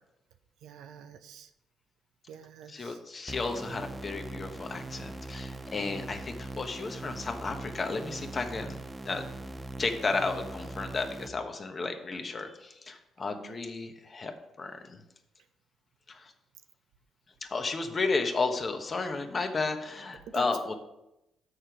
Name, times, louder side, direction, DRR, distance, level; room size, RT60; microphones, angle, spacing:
voice 1, 0.6-1.5 2.3-3.0 13.3-13.6 20.3-20.5, right 8 dB, 85° right, 9 dB, 0.7 m, -47 dB
voice 2, 2.7-8.7 9.0-9.3 9.8-14.3 14.6-15.0 16.1-16.2 17.5-20.7, left 3 dB, 35° left, 6 dB, 1.1 m, -33 dB
sound 1, 3.3-11.3, right 2 dB, 15° right, 0.6 m, -41 dB
7.5 x 6.5 x 4.8 m, 0.90 s
cardioid pair, 90°, 0 cm